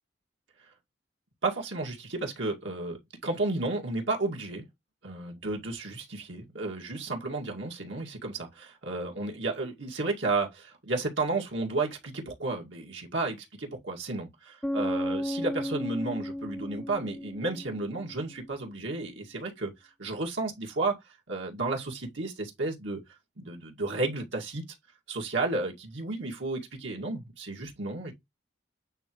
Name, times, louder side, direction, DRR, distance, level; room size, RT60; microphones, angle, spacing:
voice 1, 1.4-4.7 5.0-19.7 20.0-21.0 21.3-23.0 23.4-24.6 25.1-28.1, right 3 dB, 80° right, 2.2 m, -32 dB
Bass guitar, 14.6-18.3, left 1 dB, 5° left, 0.4 m, -34 dB
8.9 x 3.7 x 3.1 m
head